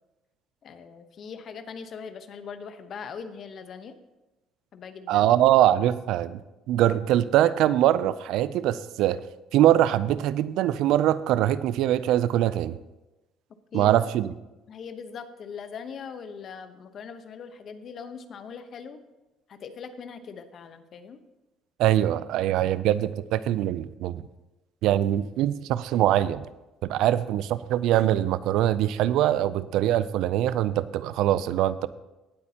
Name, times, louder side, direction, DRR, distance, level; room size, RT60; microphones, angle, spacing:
voice 1, 0.6-3.9 4.7-5.3 13.7-14.2 14.7-19.0 19.5-21.2, left 6 dB, 55° left, 10 dB, 1.0 m, -40 dB
voice 2, 5.1-6.4 6.7-9.2 9.5-12.8 13.7-14.3 21.8-24.2 24.8-26.4 26.9-31.9, right 12 dB, 75° right, 16 dB, 0.4 m, -23 dB
17.5 x 8.3 x 2.9 m, 1.0 s
supercardioid pair, 85°, 0 cm